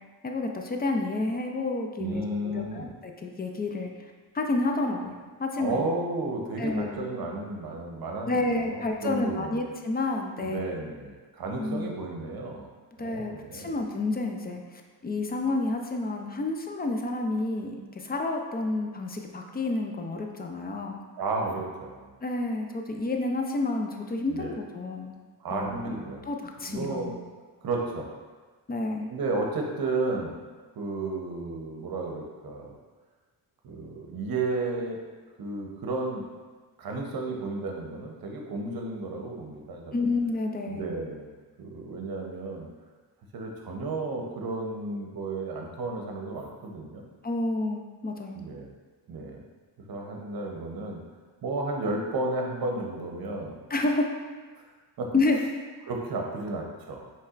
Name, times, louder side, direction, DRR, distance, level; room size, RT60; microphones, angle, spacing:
voice 1, 0.2-3.9 4.3-5.8 6.6-7.0 8.2-10.8 11.6-11.9 13.0-21.0 22.2-25.2 25.5-26.0 26.3-27.2 28.7-29.1 39.9-40.8 47.2-48.4 53.7-54.1 55.1-55.5, left 2 dB, 20° left, 2 dB, 0.4 m, -30 dB
voice 2, 2.0-2.9 5.6-9.6 10.4-12.7 13.0-13.8 21.2-22.1 24.3-24.6 25.4-26.3 26.7-27.1 27.6-28.1 29.1-30.4 30.8-32.7 33.6-35.0 35.4-36.3 36.8-40.0 40.7-41.3 41.6-42.7 43.3-47.0 48.4-48.7 49.1-49.4 49.9-51.0 51.4-53.6 54.6-54.7 55.0-55.1 55.8-57.1, right 2 dB, 50° right, 1 dB, 0.8 m, -33 dB
5.3 x 3.3 x 2.5 m, 1.4 s
cardioid pair, 95°, 45 cm